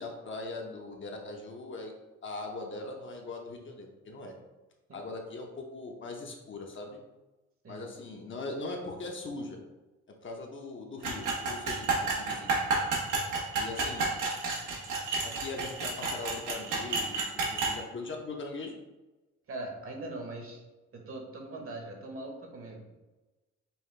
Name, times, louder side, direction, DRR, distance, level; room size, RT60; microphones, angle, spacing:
voice 1, 0.0-1.9 2.2-4.3 4.9-7.0 7.7-9.6 10.2-11.9 12.2-12.6 13.5-14.1 15.2-18.8, left 3 dB, 40° left, 1 dB, 0.8 m, -40 dB
sound 1, 11.0-17.8, right 3 dB, 80° right, 1.1 m, -30 dB
voice 2, 19.5-20.6 20.9-22.9, right 2 dB, 45° right, 1 dB, 1.1 m, -41 dB
5.6 x 2.2 x 3.3 m, 1.1 s
cardioid pair, 90°, 30 cm